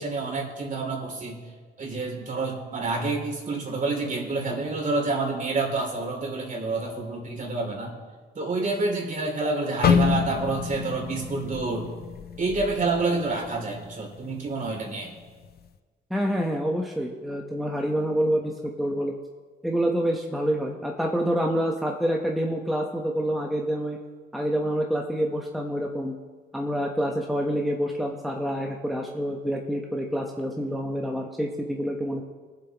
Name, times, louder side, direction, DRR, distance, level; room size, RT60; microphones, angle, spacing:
voice 1, 0.0-1.4 1.8-7.9 8.3-11.9 12.4-15.1, right 3 dB, 40° right, 0 dB, 3.0 m, -28 dB
sound 1, 9.8-13.9 14.2-14.5 15.1-15.5, left 7 dB, 50° left, 0.7 m, -27 dB
voice 2, 16.1-19.2 19.6-24.0 24.3-26.2 26.5-32.2, equal, ahead, 0 dB, 1.0 m, -27 dB
22.5 x 7.6 x 3.0 m, 1.5 s
cardioid pair, 90°, 20 cm